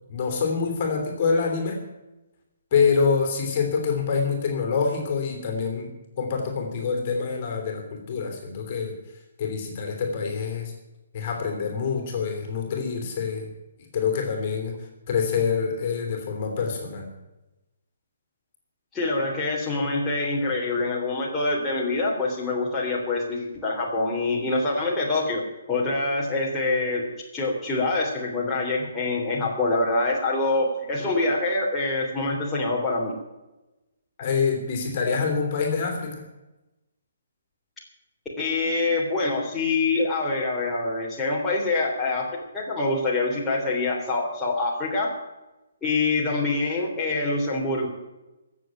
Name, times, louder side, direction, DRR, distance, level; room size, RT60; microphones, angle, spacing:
voice 1, 0.1-1.8 2.7-5.9 6.2-9.0 9.4-10.7 11.1-13.5 13.9-17.1 34.2-36.2, left 5 dB, 35° left, 3 dB, 3.2 m, -26 dB
voice 2, 18.9-25.4 25.7-27.0 27.3-33.1 38.4-45.1 45.8-47.9, left 2 dB, 10° left, -5 dB, 3.3 m, -25 dB
16.5 x 7.4 x 9.0 m, 1.0 s
figure-of-eight pair, 135°, 0 cm